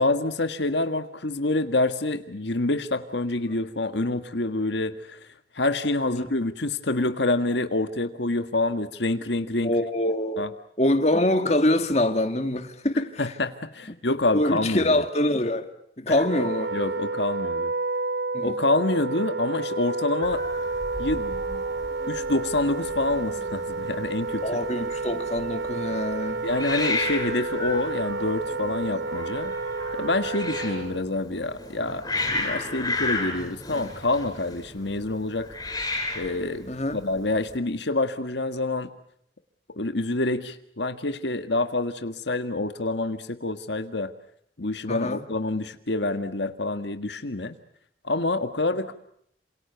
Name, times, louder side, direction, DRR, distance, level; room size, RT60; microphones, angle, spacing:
voice 1, 0.0-5.2 5.5-9.7 10.4-10.5 13.2-14.9 16.7-17.7 18.4-20.4 21.0-21.6 22.1-24.4 26.4-29.5 29.9-35.5 36.1-36.7 36.9-38.9 39.8-44.1 44.6-47.6 48.0-48.9, left 2 dB, 75° left, 1.6 m, -27 dB
voice 2, 9.6-10.5 10.8-13.3 14.3-15.7 16.0-16.8 18.3-18.6 24.4-26.5 36.7-37.0 44.9-45.2, left 1 dB, 35° left, 2.1 m, -25 dB
Wind instrument woodwind instrument, 16.2-31.0, right 3 dB, 70° right, 1.2 m, -30 dB
Hiss, 20.2-37.6, left 2 dB, 20° left, 7.2 m, -34 dB
28.5 x 27.5 x 7.0 m
head